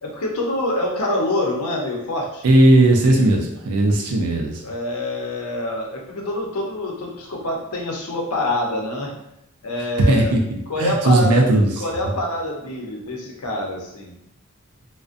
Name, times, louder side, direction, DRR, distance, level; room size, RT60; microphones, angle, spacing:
voice 1, 0.0-2.5 4.6-9.2 9.6-10.4 10.7-11.4 11.8-14.1, left 1 dB, 80° left, -1 dB, 0.6 m, -26 dB
voice 2, 2.4-4.6 10.1-10.4 10.8-11.7 12.0-12.2, right 2 dB, 85° right, 1 dB, 0.4 m, -16 dB
2.5 x 2.1 x 2.4 m, 0.81 s
head